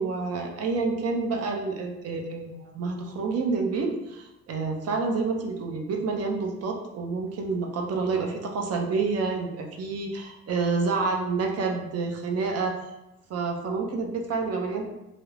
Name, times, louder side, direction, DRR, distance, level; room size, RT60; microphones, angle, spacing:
voice 1, 0.0-12.7 13.3-14.9, right 4 dB, 55° right, 2 dB, 0.5 m, -28 dB
2.3 x 2.0 x 3.1 m, 0.95 s
cardioid pair, 90°, 30 cm